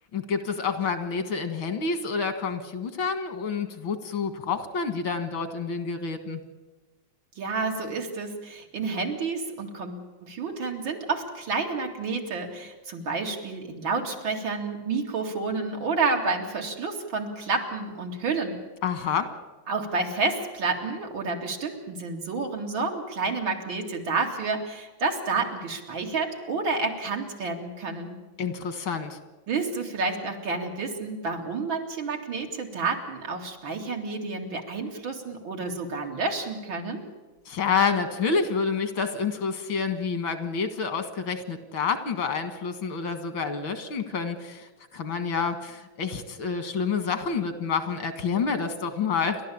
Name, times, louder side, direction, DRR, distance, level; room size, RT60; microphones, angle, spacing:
voice 1, 0.1-6.4 18.8-19.3 28.4-29.2 37.5-49.4, left 5 dB, 85° left, 9 dB, 2.6 m, -28 dB
voice 2, 7.4-18.6 19.7-28.2 29.5-37.0, right 4 dB, 80° right, 2 dB, 3.2 m, -30 dB
29.5 x 12.5 x 8.6 m, 1.2 s
omnidirectional pair, 2.1 m